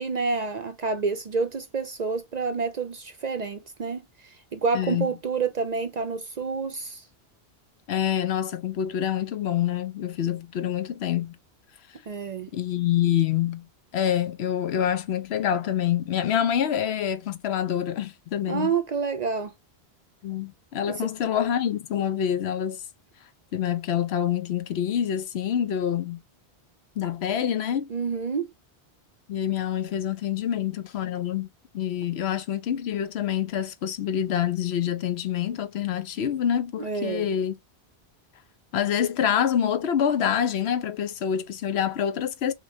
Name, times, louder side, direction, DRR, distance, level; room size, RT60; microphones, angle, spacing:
voice 1, 0.0-7.0 12.1-12.5 18.5-19.5 20.9-21.0 27.9-28.5 36.8-37.3, right 5 dB, 50° right, 0.6 m, -28 dB
voice 2, 4.7-5.1 7.9-11.4 12.5-13.7 13.9-18.7 20.2-22.8 23.5-26.2 27.0-27.9 29.3-31.5 31.7-37.5 38.7-42.5, left 9 dB, 75° left, 0.9 m, -26 dB
6.2 x 2.2 x 2.6 m
omnidirectional pair, 1.1 m